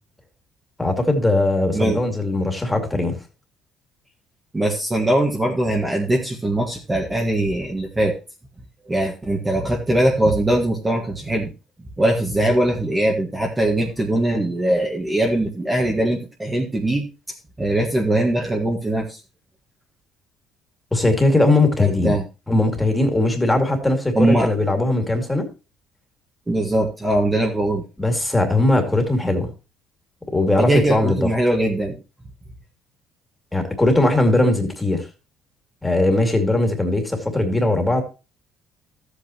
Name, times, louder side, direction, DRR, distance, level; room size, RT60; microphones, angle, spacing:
voice 1, 0.8-3.2 20.9-22.1 22.5-25.5 28.0-29.5 30.3-31.3 33.5-35.1 35.8-38.0, left 2 dB, 10° left, 4 dB, 2.4 m, -19 dB
voice 2, 4.5-8.1 8.8-11.5 12.0-17.1 17.6-19.2 21.8-22.2 24.1-24.5 26.5-27.8 30.6-32.0, right 1 dB, 15° right, 0 dB, 1.6 m, -21 dB
13.0 x 8.3 x 3.0 m, 0.30 s
cardioid pair, 120°, 0 cm